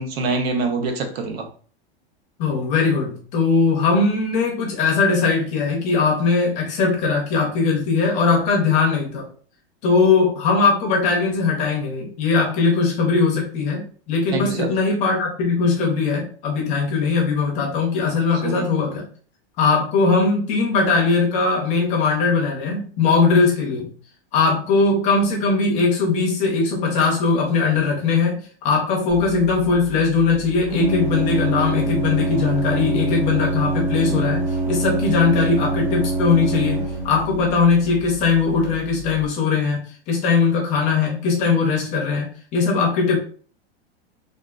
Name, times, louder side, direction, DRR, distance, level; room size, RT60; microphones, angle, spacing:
voice 1, 0.0-1.5 14.3-14.7 18.4-18.6, right 3 dB, 70° right, 6 dB, 0.8 m, -25 dB
voice 2, 2.4-9.2 9.8-19.1 19.6-23.9 24.3-39.8 40.1-43.2, left 4 dB, 25° left, 0 dB, 0.6 m, -20 dB
Organ, 29.1-39.2, right 2 dB, 20° right, 1.1 m, -26 dB
3.5 x 2.5 x 2.3 m, 0.43 s
supercardioid pair, 165°, 32 cm